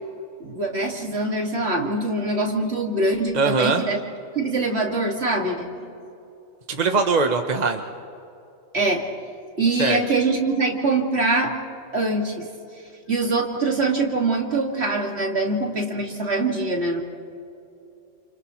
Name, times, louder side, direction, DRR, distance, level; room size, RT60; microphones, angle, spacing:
voice 1, 0.4-4.0 4.3-5.9 8.7-9.1 9.6-11.5 11.9-12.5 13.1-17.0, right 2 dB, 55° right, 0 dB, 2.5 m, -23 dB
voice 2, 3.3-3.8 6.7-7.8 9.8-10.0, right 4 dB, 35° right, 5 dB, 1.0 m, -21 dB
30.0 x 28.0 x 3.1 m, 2.8 s
omnidirectional pair, 1.4 m